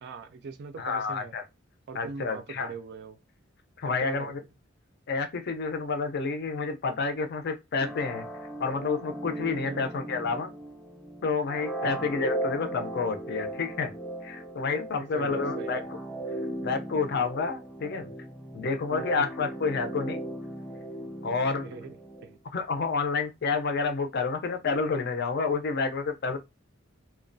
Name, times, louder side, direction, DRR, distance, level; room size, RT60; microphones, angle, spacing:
voice 1, 0.0-1.3 1.9-3.2 3.8-4.4 9.6-9.8 11.8-12.1 15.1-15.9 18.9-19.2 21.6-22.0 22.2-22.4, right 4 dB, 55° right, 0.4 m, -41 dB
voice 2, 0.8-1.4 1.9-2.7 3.8-4.4 5.1-8.3 8.6-10.5 11.2-13.9 14.2-15.8 16.6-18.1 18.5-20.2 21.2-21.7 22.5-26.4, left 4 dB, 55° left, 0.5 m, -29 dB
sound 1, 7.8-22.4, right 1 dB, 5° left, 0.7 m, -37 dB
2.3 x 2.1 x 2.5 m
head